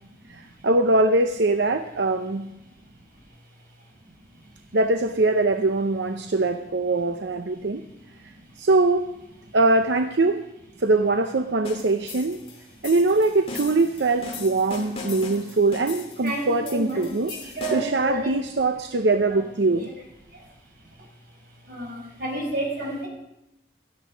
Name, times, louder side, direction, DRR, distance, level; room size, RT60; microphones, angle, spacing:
voice 1, 0.3-2.6 4.7-7.8 8.2-9.2 9.5-10.5 10.8-12.4 12.8-17.3 17.7-19.9, right 2 dB, 85° right, 7 dB, 0.7 m, -22 dB
sound 1, 11.6-18.0, left 3 dB, 35° left, 2.4 m, -38 dB
voice 2, 16.2-18.3 19.7-19.8 21.7-23.1, right 1 dB, 55° right, -1 dB, 5.5 m, -30 dB
16.5 x 12.5 x 5.1 m, 0.88 s
head